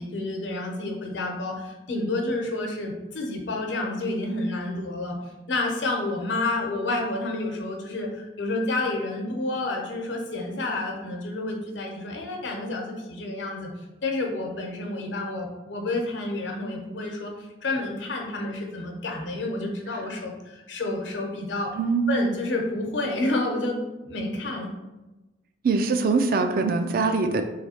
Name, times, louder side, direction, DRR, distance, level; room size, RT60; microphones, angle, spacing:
voice 1, 0.0-5.2 5.5-13.7 14.0-21.7 22.1-23.8 24.0-24.7, left 2 dB, 80° left, 1 dB, 0.8 m, -29 dB
voice 2, 21.8-22.2 25.6-27.4, right 4 dB, 50° right, 7 dB, 0.4 m, -23 dB
3.2 x 2.7 x 4.2 m, 1.0 s
head